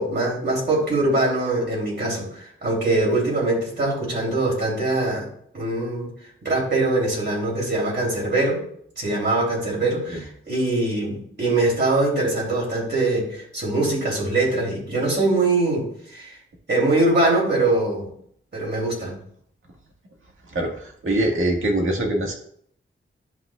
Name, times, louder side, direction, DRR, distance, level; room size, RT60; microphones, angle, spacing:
voice 1, 0.0-5.3 5.5-6.1 6.4-8.6 9.0-15.9 16.1-16.4 16.7-18.1 18.5-19.2, right 2 dB, 55° right, -4 dB, 3.5 m, -22 dB
voice 2, 20.5-22.3, right 1 dB, 70° right, 1 dB, 1.8 m, -23 dB
11.0 x 6.1 x 2.4 m, 0.63 s
wide cardioid pair, 100°, 21 cm